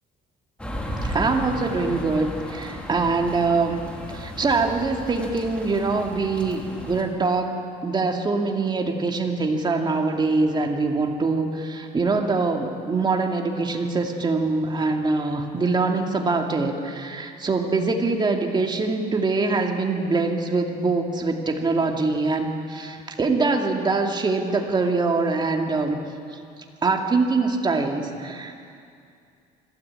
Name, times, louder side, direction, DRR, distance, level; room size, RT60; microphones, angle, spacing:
sound 1, 0.6-7.0, equal, 5° left, 2.8 m, -34 dB
voice 1, 1.0-3.8 4.1-26.0 26.3-26.4 26.8-28.6, right 3 dB, 25° right, 2 dB, 2.3 m, -24 dB
25.5 x 13.0 x 8.8 m, 2.4 s
cardioid pair, 110°, 17 cm